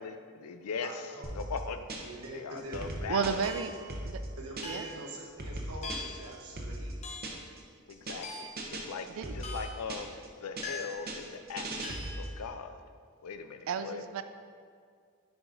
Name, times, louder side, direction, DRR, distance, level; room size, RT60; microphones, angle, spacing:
voice 1, 0.0-1.0 1.4-1.9 2.3-3.4 7.9-9.1 9.3-10.1 10.4-12.7 13.2-14.0, left 5 dB, 90° left, 9 dB, 0.4 m, -40 dB
voice 2, 0.8-1.4 2.0-3.7 4.4-7.0, right 1 dB, 85° right, -1 dB, 1.0 m, -45 dB
sound 1, 1.2-2.3 2.6-4.9 5.2-7.6 7.9-8.3 8.6-10.3 10.6-12.4, right 1 dB, 45° right, 0.8 m, -39 dB
voice 3, 3.1-3.7 4.0-4.2 4.6-4.9 9.2-9.3 13.7-14.2, right 6 dB, 65° right, 10 dB, 0.3 m, -32 dB
sound 2, 3.4-3.9 4.6-5.1 5.8-6.3 7.0-7.4 8.2-8.7 9.4-9.9 10.6-11.1 11.8-12.2, left 3 dB, 30° left, 0.6 m, -42 dB
9.2 x 4.8 x 2.6 m, 2.1 s
head